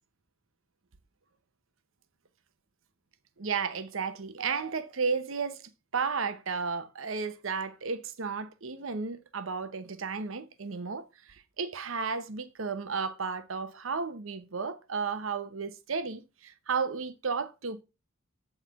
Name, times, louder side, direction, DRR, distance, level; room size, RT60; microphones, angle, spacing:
voice 1, 3.4-5.6 5.9-17.8, right 5 dB, 75° right, 0.8 m, -33 dB
8.1 x 4.4 x 5.7 m
head